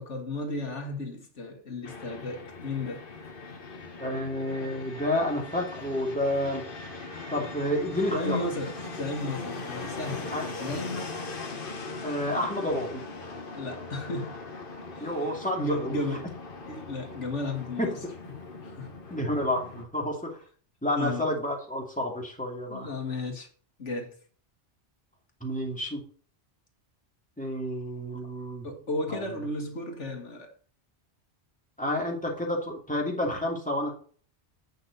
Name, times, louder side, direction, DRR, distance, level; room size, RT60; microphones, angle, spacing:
voice 1, 0.0-3.0 8.1-10.3 10.6-11.2 13.5-14.4 15.0-15.1 15.6-16.3 16.7-18.0 18.6-19.0 20.9-21.3 22.7-23.5 23.8-24.1 28.6-30.5, left 2 dB, 85° left, 2.1 m, -34 dB
Fixed-wing aircraft airplane, 1.8-19.8, left 3 dB, 50° left, 1.5 m, -40 dB
voice 2, 4.0-6.6 7.3-8.5 10.3-10.5 12.0-13.0 15.0-16.0 17.8-17.9 19.1-20.4 20.8-22.9 25.4-26.0 27.4-28.7 29.1-29.2 31.8-33.9, left 1 dB, 5° left, 2.4 m, -30 dB
8.9 x 5.9 x 4.0 m
omnidirectional pair, 1.2 m